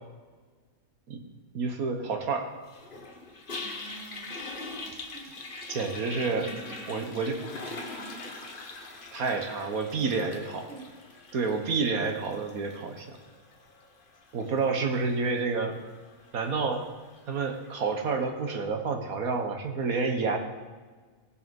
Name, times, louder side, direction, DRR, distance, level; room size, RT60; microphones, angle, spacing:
voice 1, 1.5-2.5 5.7-6.5 6.9-7.4 9.1-10.7 11.3-13.1 14.3-15.8 16.3-16.9 17.3-20.4, right 4 dB, 90° right, 4 dB, 1.8 m, -29 dB
Toilet flush, 2.7-17.9, left 3 dB, 40° left, 1.4 m, -43 dB
voice 2, 3.6-4.3 4.7-5.3 6.3-8.2 10.4-10.9, right 4 dB, 55° right, -4 dB, 3.6 m, -47 dB
17.5 x 6.9 x 5.4 m, 1.4 s
omnidirectional pair, 1.5 m